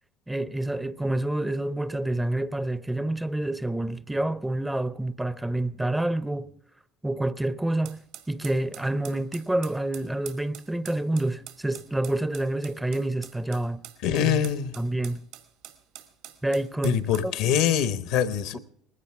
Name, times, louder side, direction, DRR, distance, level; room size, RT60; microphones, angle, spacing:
voice 1, 0.3-6.5 7.0-13.8 14.2-14.4 14.8-15.2 16.4-17.3 18.5-18.6, right 1 dB, 10° right, 0.6 m, -28 dB
sound 1, 7.8-17.3, right 11 dB, 75° right, 2.1 m, -46 dB
voice 2, 14.0-14.8 16.8-18.6, left 9 dB, 70° left, 1.1 m, -24 dB
19.5 x 16.5 x 3.6 m
hypercardioid pair, 75°, 0 cm